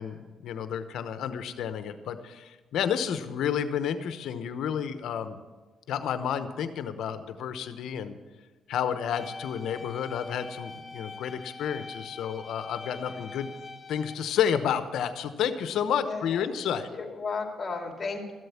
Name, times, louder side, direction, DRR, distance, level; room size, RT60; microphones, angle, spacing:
voice 1, 0.0-5.4 5.9-8.2 8.7-13.5 13.9-16.9, left 8 dB, 75° left, 10 dB, 0.9 m, -30 dB
sound 1, 9.1-14.1, left 3 dB, 5° left, 3.1 m, -43 dB
voice 2, 16.0-16.5 16.9-18.3, left 4 dB, 30° left, 2 dB, 2.6 m, -34 dB
13.5 x 7.8 x 7.1 m, 1.3 s
cardioid pair, 90°, 0 cm